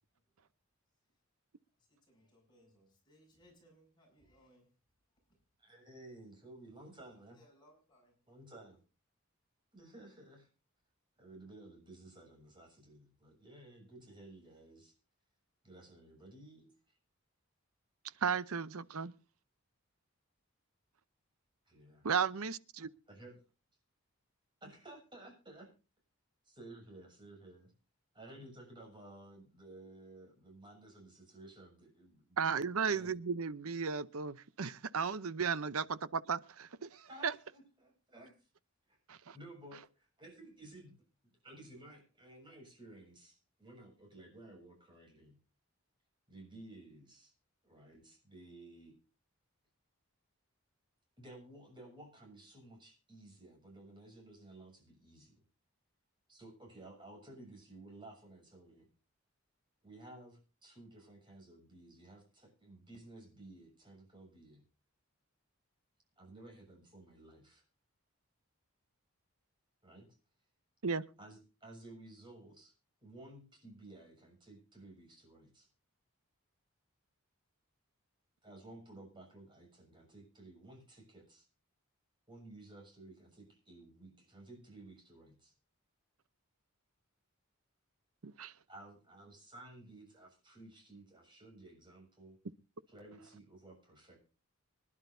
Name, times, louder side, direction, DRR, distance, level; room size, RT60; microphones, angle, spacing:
voice 1, 1.8-4.7 7.2-8.2, equal, 20° left, 6.8 m, -66 dB
voice 2, 5.6-7.4 8.3-8.8 9.7-10.5 11.2-14.9 15.6-17.0 21.7-22.1 22.8-23.4 24.6-25.7 26.4-27.7 28.1-32.5 32.9-33.1 37.1-38.5 38.9-39.0 39.3-41.0 41.2-45.4 46.3-47.3 47.6-49.0 51.2-55.4 56.3-58.9 59.8-64.6 66.2-67.6 69.8-70.2 71.2-72.7 73.0-75.7 78.4-81.5 82.3-85.5 88.7-92.4 92.9-94.2, right 2 dB, 20° right, 7.3 m, -55 dB
voice 3, 18.2-19.1 22.0-22.9 32.4-37.3 39.1-39.3 70.8-71.0 88.2-88.5, right 6 dB, 75° right, 0.7 m, -35 dB
25.0 x 11.5 x 2.7 m
head